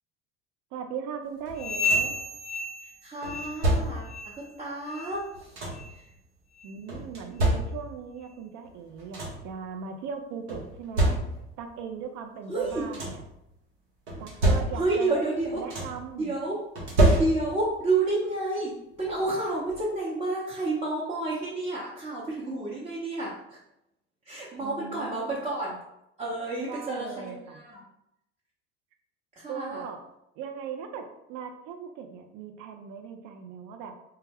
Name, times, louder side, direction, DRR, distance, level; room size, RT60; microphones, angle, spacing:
voice 1, 0.7-2.1 6.6-11.2 11.6-13.2 14.2-15.2 15.5-16.3 24.6-25.4 26.7-27.6 29.5-30.0 30.4-33.9, right 6 dB, 60° right, 5 dB, 0.5 m, -39 dB
sound 1, 1.5-2.3 3.2-4.2 5.1-6.0 6.9-8.1 8.7-8.8 8.9-9.6 10.5-11.6 12.6-13.3 14.1-15.1 15.4-16.1 16.8-17.7 19.0-19.1 19.7-19.8, right 1 dB, 80° right, 0.9 m, -28 dB
sound 2, 1.6-3.8 4.0-4.4 4.9-5.1 5.7-5.9 6.6-6.7 7.4-7.5, left 1 dB, 20° left, 0.5 m, -31 dB
voice 2, 3.0-5.6 5.9-6.0 12.5-12.9 14.7-15.6 16.2-16.6 17.2-23.6 24.3-25.8 26.2-27.8 29.4-29.8, right 2 dB, 20° right, -6 dB, 0.7 m, -30 dB
2.2 x 2.1 x 3.4 m, 0.83 s
hypercardioid pair, 65°, 33 cm